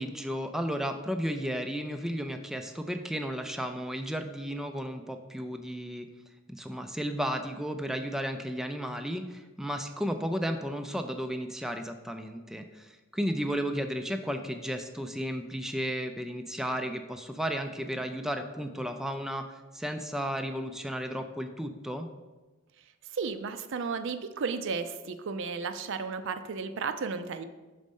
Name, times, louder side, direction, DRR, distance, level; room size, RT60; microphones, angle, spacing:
voice 1, 0.0-6.1 6.5-22.1, equal, ahead, 6 dB, 0.3 m, -33 dB
voice 2, 23.1-27.4, right 5 dB, 65° right, 10 dB, 0.5 m, -33 dB
6.3 x 4.2 x 5.3 m, 1.2 s
head